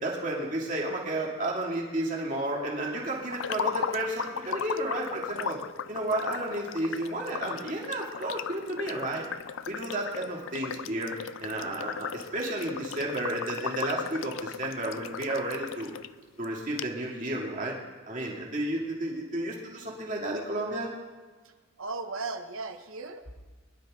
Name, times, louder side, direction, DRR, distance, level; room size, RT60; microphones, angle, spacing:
voice 1, 0.0-5.6 5.9-9.2 9.7-11.1 11.4-15.9 16.4-17.7 18.1-20.9, right 1 dB, 35° right, -2 dB, 2.6 m, -32 dB
sound 1, 3.3-16.1 16.4-16.5 16.8-16.9, left 7 dB, 70° left, 0.4 m, -37 dB
voice 2, 21.8-23.4, right 3 dB, 85° right, 7 dB, 1.2 m, -36 dB
22.0 x 11.5 x 3.9 m, 1.4 s
head